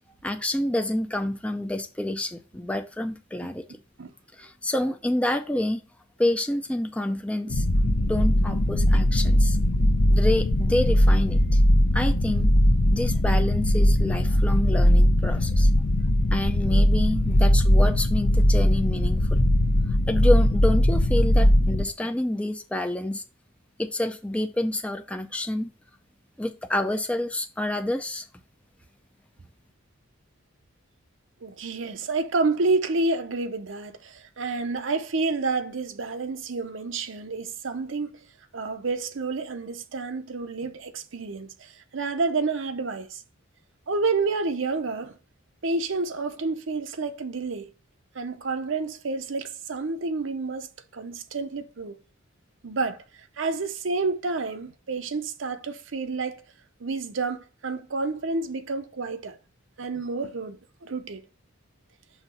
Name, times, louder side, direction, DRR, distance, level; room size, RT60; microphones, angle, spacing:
voice 1, 0.2-3.6 4.4-5.8 6.2-7.7 8.1-9.6 10.1-11.6 11.9-12.5 12.9-15.7 16.3-19.4 20.1-23.2 23.8-25.7 26.4-28.3, left 1 dB, 5° left, 0.4 m, -28 dB
sound 1, 7.5-21.8, left 1 dB, 65° left, 0.8 m, -20 dB
voice 2, 31.4-38.2 38.5-43.2 43.9-45.2 45.6-47.7 48.1-50.7 50.9-52.0 52.6-53.0 53.4-56.4 56.8-59.4 59.8-61.2, right 3 dB, 65° right, 0.7 m, -29 dB
5.8 x 3.0 x 5.4 m
head